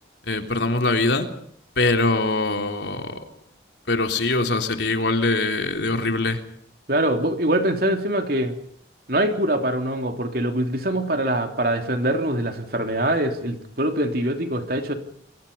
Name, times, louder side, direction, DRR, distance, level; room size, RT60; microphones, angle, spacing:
voice 1, 0.2-1.3 1.8-3.2 3.9-6.4, left 2 dB, 70° left, 5 dB, 3.5 m, -22 dB
voice 2, 6.9-8.5 9.1-14.9, right 1 dB, 50° right, 5 dB, 3.4 m, -23 dB
29.0 x 22.5 x 5.5 m, 0.66 s
head